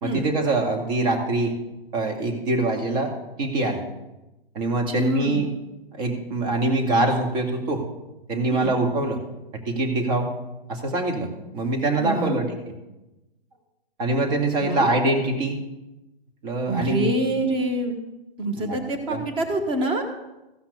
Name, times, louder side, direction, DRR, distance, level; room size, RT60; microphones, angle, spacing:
voice 1, 0.0-1.6 1.9-3.1 3.4-3.8 4.5-5.5 5.9-7.8 8.3-9.2 9.5-10.3 10.7-11.3 11.5-12.7 14.0-15.6 16.4-17.1 18.6-18.8 19.1-19.2, right 2 dB, 40° right, 3 dB, 2.4 m, -24 dB
voice 2, 4.9-5.4 8.5-8.8 12.0-12.4 14.6-14.9 16.7-18.0 18.4-20.0, right 1 dB, 15° right, 6 dB, 1.3 m, -26 dB
15.5 x 5.9 x 6.8 m, 1.0 s
hypercardioid pair, 140°, 31 cm